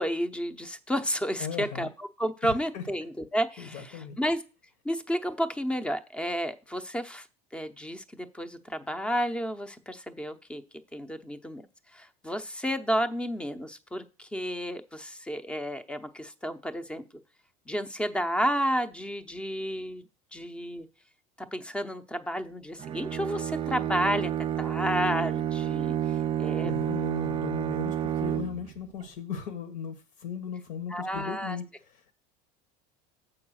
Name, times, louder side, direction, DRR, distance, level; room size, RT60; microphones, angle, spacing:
voice 1, 0.0-1.9 2.2-4.4 4.8-7.3 7.5-10.6 10.9-11.7 11.9-17.0 17.7-20.0 20.3-20.9 21.4-24.3 24.6-26.0 26.4-26.7 30.9-31.6, equal, 5° left, 11 dB, 0.7 m, -31 dB
voice 2, 1.4-1.9 2.4-2.8 3.6-4.2 26.6-32.1, left 7 dB, 70° left, 9 dB, 1.3 m, -37 dB
Bowed string instrument, 22.8-28.8, right 10 dB, 30° right, 0.4 m, -30 dB
7.1 x 4.8 x 6.3 m, 0.33 s
supercardioid pair, 130°, 18 cm